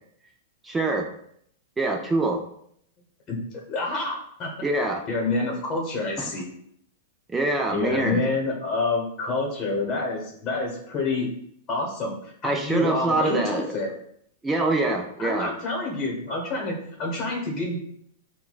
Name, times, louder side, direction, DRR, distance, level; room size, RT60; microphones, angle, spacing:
voice 1, 0.6-1.1 1.8-2.4 4.6-5.0 6.2-6.3 7.3-8.2 12.4-13.7 14.4-15.5, right 2 dB, 15° right, 2 dB, 0.5 m, -24 dB
voice 2, 3.3-4.5 5.1-6.5 7.7-11.3 11.7-12.2 12.4-13.9 15.2-17.8, left 3 dB, 30° left, -1 dB, 1.2 m, -28 dB
5.8 x 2.3 x 2.4 m, 0.69 s
hypercardioid pair, 110°, 0 cm